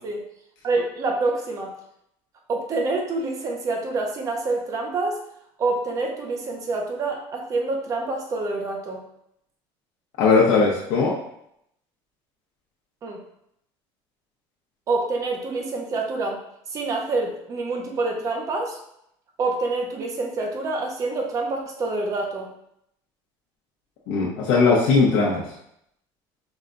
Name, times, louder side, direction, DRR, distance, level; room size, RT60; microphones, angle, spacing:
voice 1, 0.6-1.8 2.5-5.2 5.6-9.0 13.0-13.2 14.9-16.4 16.7-18.8 19.4-22.5, right 3 dB, 30° right, 2 dB, 0.6 m, -27 dB
voice 2, 10.2-11.1 24.1-25.4, left 4 dB, 80° left, -4 dB, 0.8 m, -19 dB
4.8 x 2.2 x 3.8 m, 0.75 s
cardioid pair, 170°, 11 cm